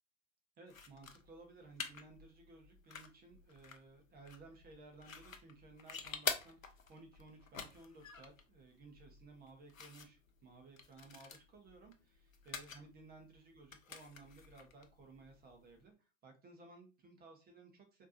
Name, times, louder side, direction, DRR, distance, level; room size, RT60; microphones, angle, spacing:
voice 1, 0.6-18.1, right 3 dB, 25° right, 2 dB, 1.0 m, -58 dB
sound 1, 0.7-15.8, left 6 dB, 90° left, 0.6 m, -48 dB
4.4 x 2.8 x 2.6 m, 0.31 s
figure-of-eight pair, 90°, 39 cm